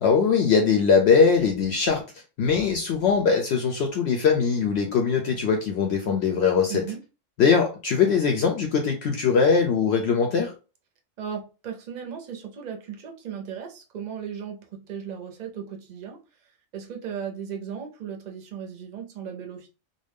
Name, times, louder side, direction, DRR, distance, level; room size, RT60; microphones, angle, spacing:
voice 1, 0.0-2.0 2.4-6.8 7.4-10.5, left 5 dB, 65° left, 0.7 m, -21 dB
voice 2, 6.7-7.0 11.2-16.2 16.7-19.7, right 7 dB, 45° right, 0.6 m, -36 dB
2.6 x 2.2 x 3.4 m
omnidirectional pair, 1.4 m